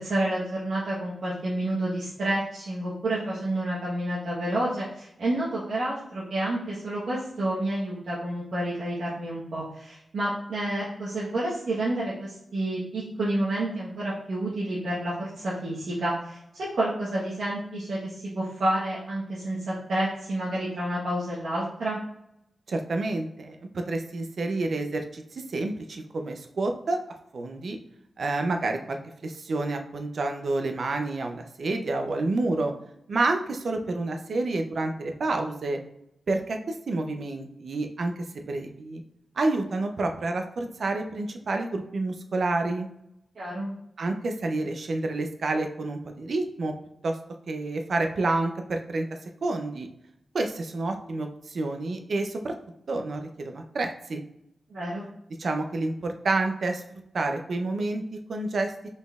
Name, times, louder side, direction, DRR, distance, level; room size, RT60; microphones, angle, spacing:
voice 1, 0.0-22.0 43.3-43.7 54.7-55.0, right 1 dB, 80° right, -8 dB, 1.1 m, -29 dB
voice 2, 22.7-27.0 27.3-27.8 28.2-32.7 33.1-35.8 36.3-39.0 39.4-42.9 44.0-46.7 47.0-47.2 47.5-49.1 49.4-49.9 50.3-52.5 52.9-54.2 55.4-56.8 57.1-58.0 58.3-58.7, right 2 dB, 60° right, 5 dB, 0.5 m, -29 dB
5.3 x 4.0 x 2.4 m, 0.80 s
wide cardioid pair, 145°, 0 cm